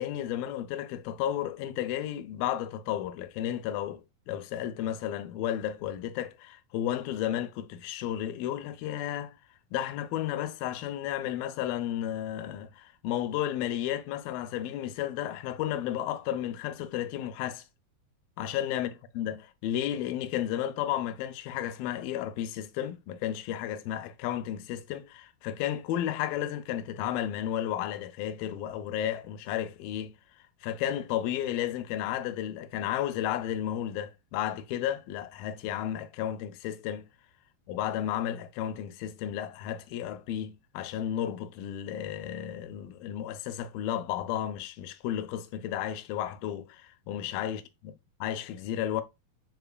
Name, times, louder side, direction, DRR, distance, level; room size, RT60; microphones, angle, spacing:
voice 1, 0.0-9.3 9.7-17.6 18.4-18.9 19.2-30.1 30.6-37.1 37.7-47.9 48.2-49.0, left 11 dB, 80° left, 2.2 m, -33 dB
5.7 x 3.7 x 2.2 m
omnidirectional pair, 4.4 m